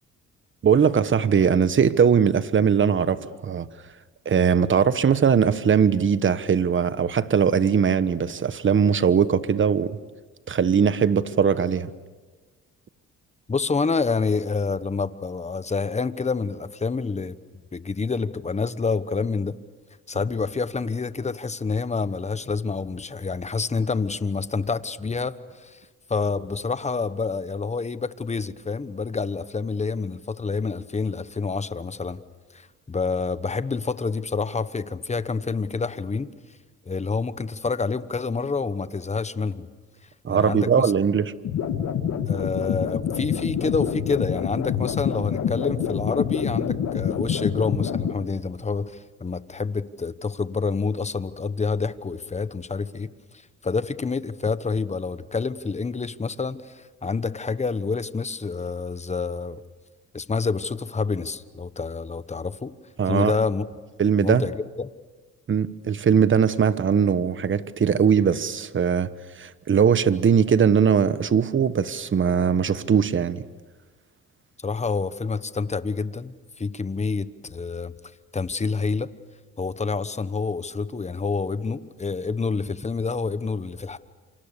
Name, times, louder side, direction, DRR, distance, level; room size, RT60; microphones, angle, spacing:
voice 1, 0.6-3.7 4.2-10.0 10.5-11.9 40.2-41.3 63.0-63.3 64.0-64.5 65.5-69.1 69.4-73.4, right 7 dB, 40° right, 1.2 m, -20 dB
voice 2, 13.5-17.4 17.7-19.6 20.1-25.8 26.1-32.2 32.5-36.3 36.9-39.7 40.3-40.9 42.3-59.6 60.1-62.7 63.1-63.7 64.2-64.9 74.6-77.9 78.3-79.1 79.6-84.0, left 4 dB, 20° left, 1.1 m, -28 dB
sound 1, 41.4-48.1, left 8 dB, 70° left, 2.2 m, -26 dB
27.5 x 26.0 x 6.9 m
cardioid pair, 90°, 30 cm